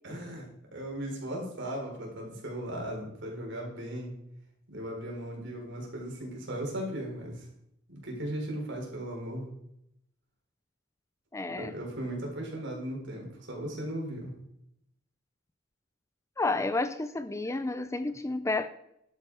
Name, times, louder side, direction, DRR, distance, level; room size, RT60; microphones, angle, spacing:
voice 1, 0.0-4.1 4.7-7.5 7.9-9.4 11.5-14.3, right 1 dB, 60° right, 0 dB, 4.1 m, -37 dB
voice 2, 11.3-11.7 16.4-18.7, left 2 dB, 15° left, 12 dB, 0.5 m, -31 dB
11.5 x 9.1 x 4.7 m, 0.78 s
head